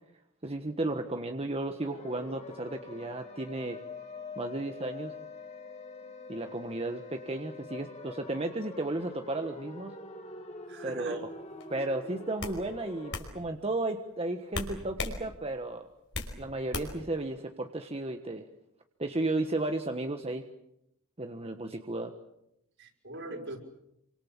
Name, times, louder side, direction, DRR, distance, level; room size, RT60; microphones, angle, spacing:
voice 1, 0.4-3.8 4.4-5.1 6.3-10.0 10.8-11.2 11.7-15.9 16.4-18.5 19.0-20.4 21.2-22.1, right 2 dB, 30° right, 5 dB, 1.4 m, -34 dB
sound 1, 1.8-13.2, left 3 dB, 30° left, 3.2 m, -45 dB
voice 2, 10.7-11.2 22.8-23.6, right 2 dB, 60° right, 2 dB, 5.7 m, -41 dB
sound 2, 11.6-11.8 12.4-12.6 13.1-13.3 14.5-15.2 15.5-16.3 16.7-17.1, left 3 dB, 60° left, 5.1 m, -35 dB
28.0 x 25.5 x 7.4 m, 0.80 s
head